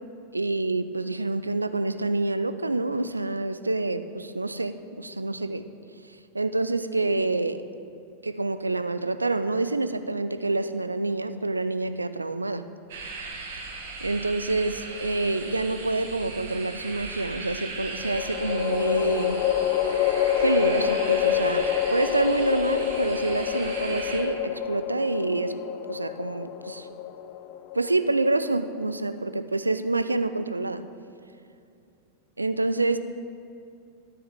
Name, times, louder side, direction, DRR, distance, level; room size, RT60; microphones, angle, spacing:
voice 1, 0.3-5.6 6.3-7.6 8.2-12.6 13.7-19.4 20.4-25.6 25.9-26.9 27.7-30.8 32.4-33.0, right 2 dB, 80° right, 11 dB, 0.3 m, -27 dB
sound 1, 12.9-24.2, right 3 dB, 60° right, 1.3 m, -38 dB
sound 2, 14.9-15.7 18.0-29.3, left 10 dB, 45° left, 0.4 m, -28 dB
12.5 x 7.0 x 3.6 m, 2.5 s
figure-of-eight pair, 90°, 0 cm